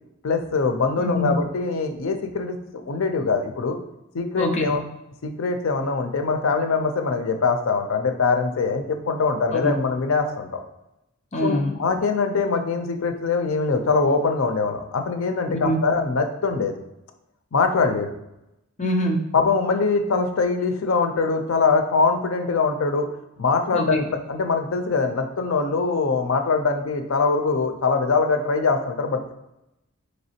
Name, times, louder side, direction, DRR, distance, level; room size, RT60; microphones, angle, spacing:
voice 1, 0.2-2.6 2.8-3.8 4.1-4.8 5.2-10.6 11.4-16.8 17.5-18.1 19.3-23.1 23.4-29.3, left 4 dB, 85° left, 6 dB, 0.5 m, -23 dB
voice 2, 1.0-1.4 4.4-4.8 9.5-9.7 11.3-11.8 15.5-15.8 18.8-19.3 23.7-24.1, left 1 dB, 35° left, 2 dB, 0.5 m, -24 dB
4.1 x 3.3 x 2.8 m, 0.88 s
head